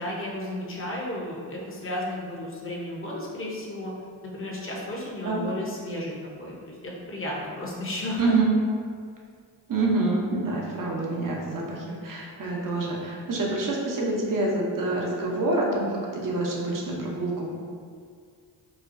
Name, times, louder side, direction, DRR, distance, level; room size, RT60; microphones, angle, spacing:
voice 1, 0.0-3.9 4.3-6.1 6.4-8.4, left 1 dB, 30° left, -3 dB, 0.9 m, -33 dB
voice 2, 8.2-8.5 9.7-17.5, right 2 dB, 45° right, -2 dB, 0.9 m, -27 dB
4.1 x 2.3 x 2.6 m, 2.1 s
supercardioid pair, 50°, 44 cm